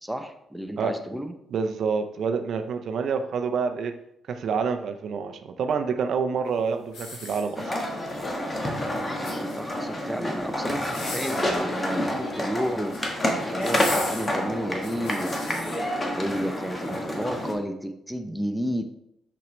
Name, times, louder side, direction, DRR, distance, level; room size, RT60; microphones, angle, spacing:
voice 1, 0.0-1.3 9.3-15.8 16.2-18.8, equal, 5° right, 6 dB, 0.6 m, -32 dB
voice 2, 1.5-3.9 4.3-7.7, right 5 dB, 65° right, 6 dB, 0.6 m, -27 dB
sound 1, 6.9-7.9 9.0-9.8 10.7-11.6 12.6-13.1 13.6-15.8 16.4-16.5, left 3 dB, 80° left, 1.7 m, -38 dB
sound 2, 7.6-17.5, left 1 dB, 25° left, 1.3 m, -28 dB
6.2 x 5.7 x 3.1 m, 0.78 s
cardioid pair, 90°, 0 cm